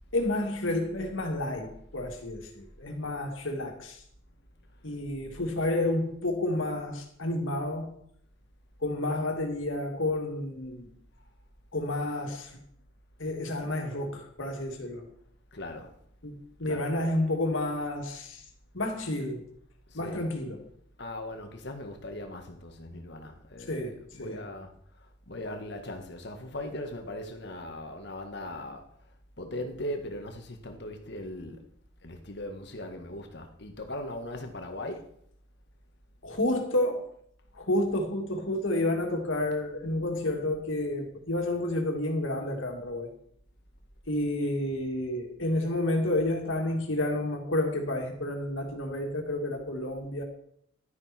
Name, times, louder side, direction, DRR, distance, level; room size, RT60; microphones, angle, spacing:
voice 1, 0.1-4.0 4.8-8.0 8.8-10.9 11.7-12.6 13.2-15.1 16.2-18.4 18.7-19.5 19.9-20.7 23.7-24.4 36.2-37.1 37.5-43.1 44.1-50.2, left 1 dB, 80° left, 2.6 m, -30 dB
voice 2, 15.5-15.9 16.6-17.1 19.9-20.3 21.0-23.8 24.2-24.7 25.3-28.8 29.4-31.6 32.0-35.1, left 1 dB, 55° left, 1.7 m, -39 dB
12.0 x 10.5 x 4.4 m
head